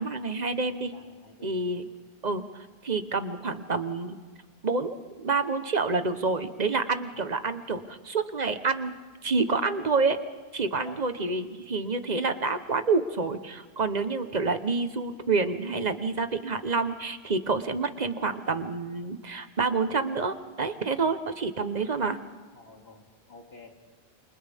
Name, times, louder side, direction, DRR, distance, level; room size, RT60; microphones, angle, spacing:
voice 1, 0.0-0.9 1.4-1.8 2.2-2.4 2.8-4.2 4.6-8.9 9.2-10.2 10.5-22.2, right 4 dB, 45° right, 10 dB, 1.2 m, -28 dB
voice 2, 0.9-1.9 7.1-7.4 10.6-11.0 11.6-11.7 22.5-23.7, left 2 dB, 75° left, 1 dB, 3.0 m, -51 dB
29.0 x 26.0 x 3.6 m, 1.4 s
omnidirectional pair, 1.0 m